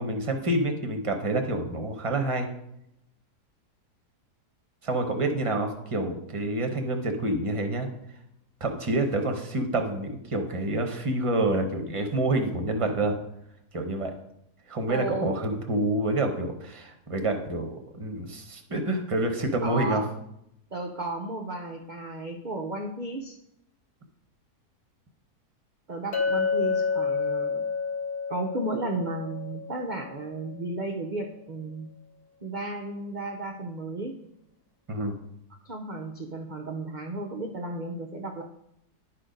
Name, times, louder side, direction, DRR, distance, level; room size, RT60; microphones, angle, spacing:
voice 1, 0.0-2.5 4.8-7.9 8.6-13.1 13.7-14.1 14.7-20.0 34.9-35.2, right 2 dB, 30° right, 4 dB, 0.7 m, -28 dB
voice 2, 14.9-15.4 19.6-20.1 20.7-23.4 25.9-27.7 28.3-31.9 32.4-34.1 35.7-38.4, right 2 dB, 70° right, 3 dB, 0.4 m, -34 dB
Chink clink, 26.1-30.4, left 5 dB, 65° left, 1.6 m, -29 dB
10.5 x 4.3 x 5.1 m, 0.80 s
omnidirectional pair, 1.7 m